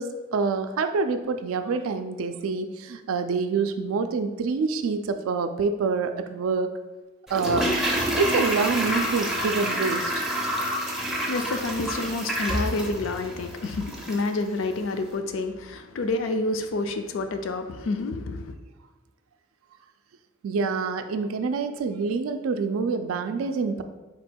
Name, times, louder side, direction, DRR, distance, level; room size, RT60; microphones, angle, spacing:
voice 1, 0.0-6.7 7.3-7.7 8.2-10.2 20.4-23.8, right 4 dB, 85° right, 8 dB, 0.3 m, -26 dB
Toilet flush, 7.3-14.4 14.6-14.7, equal, ahead, 0.4 m, -28 dB
voice 2, 11.1-18.5, left 2 dB, 75° left, 7 dB, 0.4 m, -29 dB
4.2 x 2.2 x 4.3 m, 1.2 s
head